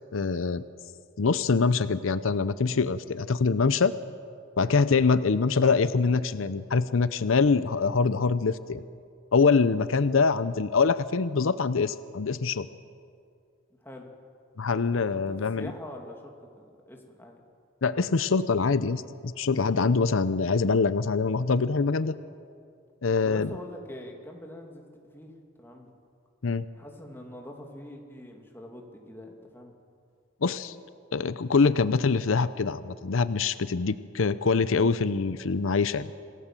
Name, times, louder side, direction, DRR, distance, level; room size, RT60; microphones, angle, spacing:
voice 1, 0.1-0.6 1.2-4.0 4.6-8.8 9.3-12.7 14.6-15.7 17.8-22.1 23.0-23.5 26.4-26.7 30.4-30.7 31.1-36.1, left 4 dB, 85° left, 14 dB, 0.7 m, -24 dB
voice 2, 15.1-17.4 23.2-24.9 25.1-25.3 25.6-25.9 26.7-29.7, left 1 dB, 10° left, 1 dB, 2.7 m, -44 dB
26.5 x 18.0 x 7.5 m, 2.3 s
head